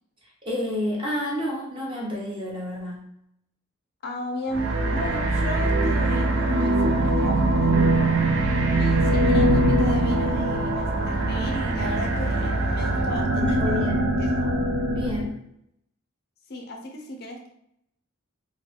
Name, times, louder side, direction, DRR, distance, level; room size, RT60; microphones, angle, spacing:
voice 1, 0.2-3.1 13.4-14.2 14.9-15.4, left 1 dB, 25° right, -3 dB, 0.9 m, -30 dB
voice 2, 4.0-8.2 8.6-13.9 14.2-14.5 16.5-17.5, left 1 dB, 45° left, 2 dB, 0.4 m, -35 dB
sound 1, 4.5-13.0, right 1 dB, 45° right, 1.0 m, -28 dB
sound 2, 4.5-15.3, right 2 dB, 65° right, 0.5 m, -23 dB
3.7 x 2.0 x 3.1 m, 0.74 s
head